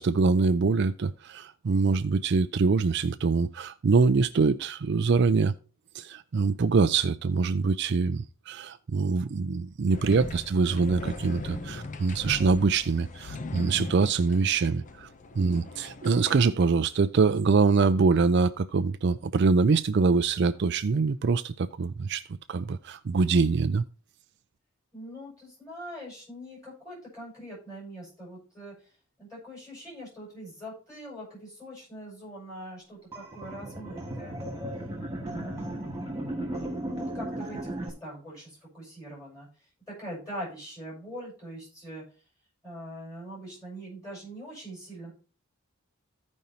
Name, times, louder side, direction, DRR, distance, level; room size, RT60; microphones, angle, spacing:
voice 1, 0.0-5.5 5.9-15.1 15.4-22.2 22.5-23.8, right 4 dB, 50° right, 0.4 m, -24 dB
sound 1, 9.9-16.7, left 2 dB, 35° left, 0.6 m, -39 dB
voice 2, 15.3-15.7 24.9-28.9 29.2-34.7 35.2-35.8 36.5-42.0 42.6-45.1, equal, 15° left, 5.6 m, -43 dB
sound 2, 33.1-37.9, right 1 dB, 15° right, 2.0 m, -35 dB
15.5 x 5.3 x 2.8 m
head